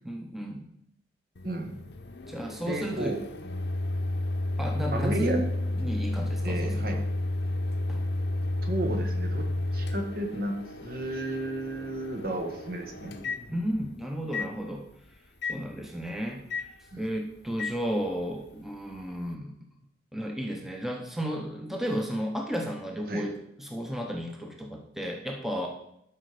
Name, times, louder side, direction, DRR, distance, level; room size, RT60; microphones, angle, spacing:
voice 1, 0.0-0.7 2.3-3.2 4.6-7.0 7.9-8.0 13.5-14.9 15.5-16.7 17.0-19.5 20.1-25.7, equal, ahead, 1 dB, 0.9 m, -33 dB
Microwave oven, 1.4-13.9 14.3-14.5 15.4-15.6 16.5-16.7 17.6-17.8, left 2 dB, 65° left, 0.9 m, -32 dB
voice 2, 1.4-1.8 2.7-3.2 4.9-5.4 6.4-7.0 8.6-9.5 9.7-13.1 13.5-13.6 16.9-17.1 23.1-23.3, right 1 dB, 55° right, 4 dB, 1.4 m, -33 dB
12.0 x 5.2 x 4.9 m, 0.76 s
head